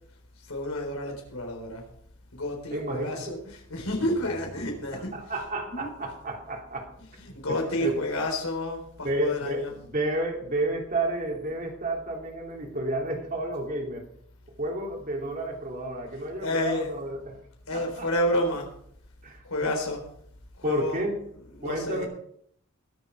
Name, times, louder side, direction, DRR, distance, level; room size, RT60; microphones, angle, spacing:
voice 1, 0.4-1.9 2.3-5.9 7.0-9.8 16.4-17.2 17.7-18.8 19.4-20.1 20.6-22.1, left 1 dB, 75° left, 2 dB, 4.0 m, -30 dB
voice 2, 2.7-3.4 4.9-7.2 7.5-8.0 9.0-14.1 14.6-17.4 17.7-18.1 19.2-19.4 20.6-21.2 21.6-22.1, right 1 dB, 40° right, 1 dB, 2.9 m, -31 dB
21.0 x 7.5 x 4.6 m, 0.66 s
head